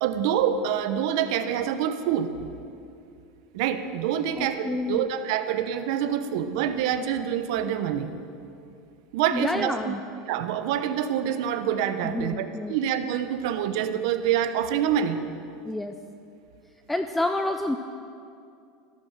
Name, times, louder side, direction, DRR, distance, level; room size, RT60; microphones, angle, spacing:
voice 1, 0.0-2.3 3.5-8.1 9.1-10.0 10.2-15.2, right 9 dB, 65° right, 10 dB, 1.0 m, -26 dB
voice 2, 4.4-5.1 9.3-10.0 12.0-12.7 15.7-15.9 16.9-17.8, left 2 dB, 5° left, 7 dB, 0.4 m, -28 dB
14.5 x 12.0 x 6.7 m, 2.5 s
supercardioid pair, 150°, 3 cm